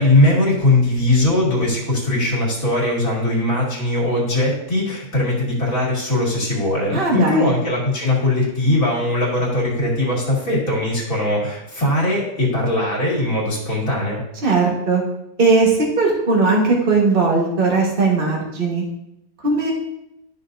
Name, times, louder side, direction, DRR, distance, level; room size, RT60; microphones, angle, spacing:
voice 1, 0.0-14.2, left 1 dB, 55° left, -4 dB, 2.8 m, -20 dB
voice 2, 6.9-7.6 14.4-15.0 15.4-18.8 19.4-19.7, right 3 dB, 35° right, -2 dB, 1.7 m, -18 dB
12.0 x 5.6 x 2.7 m, 0.82 s
omnidirectional pair, 1.7 m